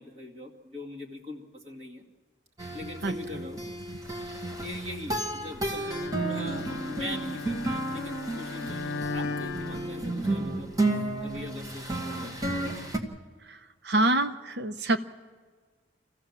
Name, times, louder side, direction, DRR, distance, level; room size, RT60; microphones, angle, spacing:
voice 1, 0.0-2.0 2.7-3.6 4.6-12.3, left 1 dB, 35° right, -1 dB, 2.3 m, -42 dB
sound 1, 2.6-13.0, right 2 dB, 20° right, 1.4 m, -32 dB
Bowed string instrument, 5.7-10.7, left 4 dB, 75° left, 0.7 m, -37 dB
voice 2, 13.8-15.0, right 2 dB, 65° right, 10 dB, 0.8 m, -25 dB
26.5 x 15.0 x 7.4 m, 1.5 s
head